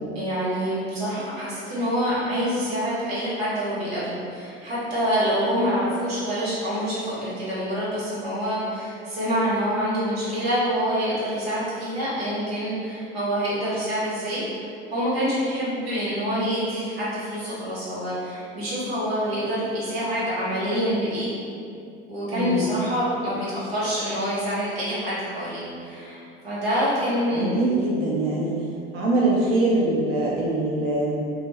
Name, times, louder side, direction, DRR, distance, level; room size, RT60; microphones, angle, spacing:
voice 1, 0.1-21.3 22.1-27.5, equal, 85° right, -10 dB, 0.9 m, -26 dB
voice 2, 22.3-22.7 27.3-28.5 28.9-31.2, right 2 dB, 45° right, -5 dB, 0.6 m, -23 dB
2.3 x 2.1 x 3.2 m, 2.5 s
hypercardioid pair, 60°, 30 cm